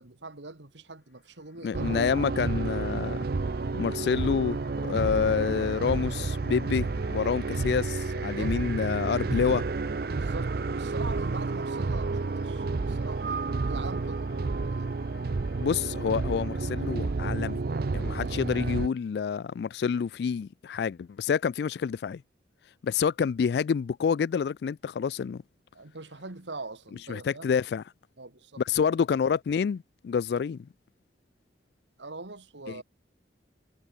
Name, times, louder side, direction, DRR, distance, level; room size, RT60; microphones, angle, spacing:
voice 1, 0.0-2.1 8.3-8.6 10.1-14.9 25.7-27.5 28.2-28.6 32.0-32.8, right 3 dB, 90° right, 2.1 m, -43 dB
sound 1, 1.0-17.0, left 4 dB, 90° left, 3.7 m, -56 dB
voice 2, 1.6-3.2 3.7-4.6 4.8-9.6 15.6-17.6 17.9-22.2 22.8-25.4 27.1-27.8 28.7-30.7 32.7-32.8, left 6 dB, 65° left, 0.3 m, -28 dB
sound 2, 1.7-18.9, right 3 dB, 55° right, 0.5 m, -30 dB
head